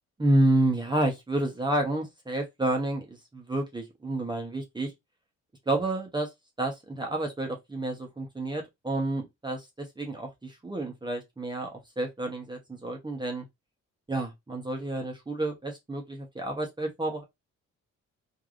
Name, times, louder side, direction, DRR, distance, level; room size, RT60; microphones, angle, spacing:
voice 1, 0.2-4.9 5.7-6.3 6.6-13.4 14.1-17.2, right 1 dB, 15° right, 0.9 m, -29 dB
3.3 x 2.6 x 2.5 m
cardioid pair, 90°, 30 cm